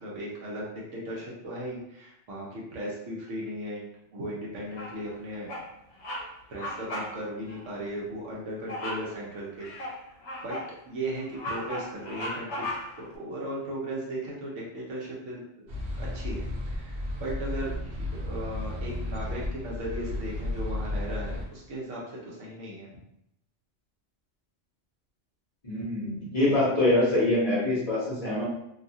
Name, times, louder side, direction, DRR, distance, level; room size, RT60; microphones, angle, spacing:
voice 1, 0.0-5.5 6.5-9.7 10.4-10.6 10.9-15.7 16.0-22.9, right 1 dB, 85° right, -4 dB, 1.2 m, -37 dB
Bird vocalization bird call bird song, 4.7-5.1 5.5-5.7 6.0-6.3 6.6-7.1 7.5-7.6 8.7-9.1 9.6-10.7 11.1-13.1, left 1 dB, 75° left, 0.9 m, -36 dB
sound 1, 15.7-21.5, left 1 dB, 65° right, 0.9 m, -33 dB
voice 2, 25.6-28.4, left 2 dB, 35° left, -8 dB, 0.8 m, -24 dB
2.8 x 2.3 x 2.7 m, 0.79 s
omnidirectional pair, 1.2 m